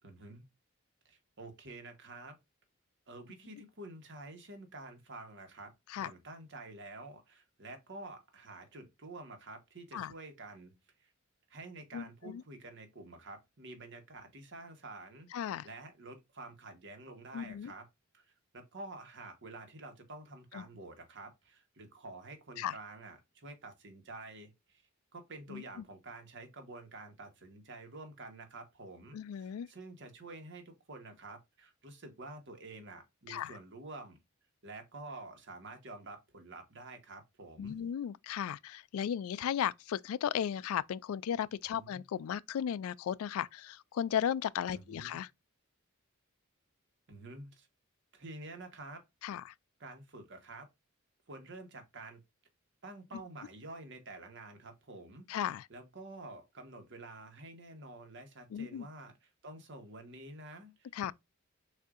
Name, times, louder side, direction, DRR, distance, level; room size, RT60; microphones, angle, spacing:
voice 1, 0.0-0.4 1.0-2.4 3.1-10.7 11.0-11.1 11.5-17.8 18.1-18.3 18.5-24.8 25.1-34.2 34.6-37.9 41.7-42.0 44.7-45.2 47.1-47.7 48.1-49.0 49.8-50.7 51.3-52.2 52.8-55.3 55.7-61.1, right 2 dB, 60° right, 1.3 m, -49 dB
voice 2, 11.9-12.4 15.3-15.7 17.3-17.7 20.5-20.6 22.6-22.7 25.5-25.6 29.1-29.7 33.3-33.5 37.6-45.3 49.2-49.4 55.3-55.7 58.5-58.9 60.9-61.1, left 9 dB, 80° left, 0.3 m, -35 dB
6.5 x 2.7 x 2.4 m
head